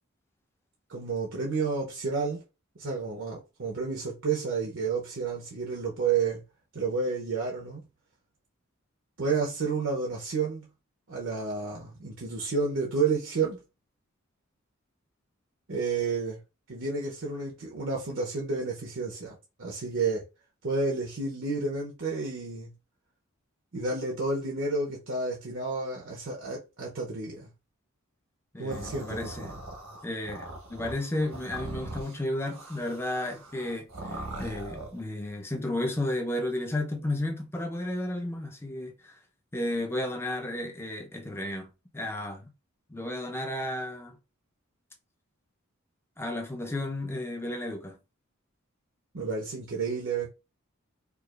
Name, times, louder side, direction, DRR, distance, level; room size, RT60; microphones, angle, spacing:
voice 1, 0.9-2.4 2.8-6.4 6.7-7.8 9.2-10.7 11.1-13.6 15.7-16.4 16.7-20.2 20.6-22.7 23.7-27.5 28.6-29.5 49.1-50.3, right 4 dB, 60° right, 0.8 m, -30 dB
voice 2, 28.5-29.6 30.0-39.1 39.5-42.5 42.9-44.2 46.2-48.0, left 1 dB, 10° left, 0.6 m, -33 dB
sound 1, 28.7-35.0, right 1 dB, 85° right, 1.3 m, -41 dB
4.6 x 2.5 x 2.4 m
head